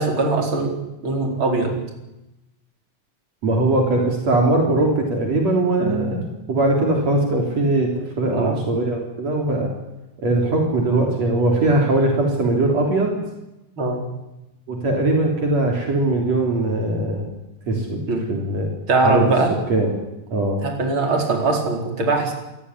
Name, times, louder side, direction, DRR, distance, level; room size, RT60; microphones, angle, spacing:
voice 1, 0.0-1.8 5.8-6.1 8.3-8.6 13.8-14.1 18.1-18.3 18.9-19.5 20.6-22.3, right 3 dB, 40° right, 2 dB, 5.2 m, -21 dB
voice 2, 3.4-6.2 6.5-7.9 8.2-9.7 10.2-13.2 14.7-17.3 17.7-18.0 18.3-18.7 19.0-19.3 19.7-19.9 20.3-20.6, right 2 dB, 60° right, 0 dB, 4.8 m, -20 dB
27.5 x 17.5 x 10.0 m, 0.96 s
omnidirectional pair, 3.4 m